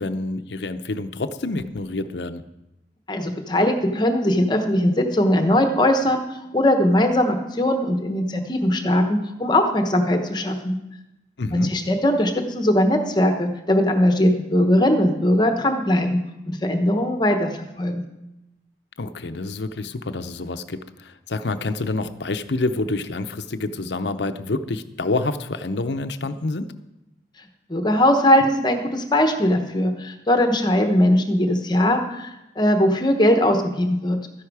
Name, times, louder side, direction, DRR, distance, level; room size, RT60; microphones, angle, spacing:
voice 1, 0.0-2.4 11.4-11.7 19.0-26.7, left 2 dB, 75° left, 9 dB, 0.7 m, -27 dB
voice 2, 3.1-10.8 11.5-16.2 16.5-17.5 17.8-18.1 27.7-34.2, left 1 dB, 25° left, 5 dB, 1.0 m, -20 dB
13.0 x 10.5 x 4.8 m, 0.95 s
head